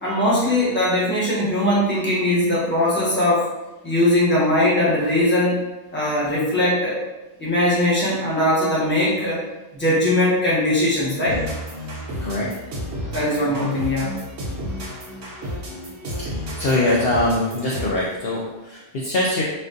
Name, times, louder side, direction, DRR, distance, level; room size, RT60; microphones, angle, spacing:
voice 1, 0.0-3.5 3.8-5.7 5.9-6.9 7.4-9.4 9.7-11.4 13.1-14.1, left 1 dB, 10° left, -7 dB, 1.0 m, -20 dB
sound 1, 11.3-18.1, equal, 80° right, 1.1 m, -31 dB
voice 2, 16.6-19.4, left 2 dB, 60° left, -5 dB, 0.8 m, -22 dB
4.3 x 2.5 x 2.5 m, 1.0 s
omnidirectional pair, 1.2 m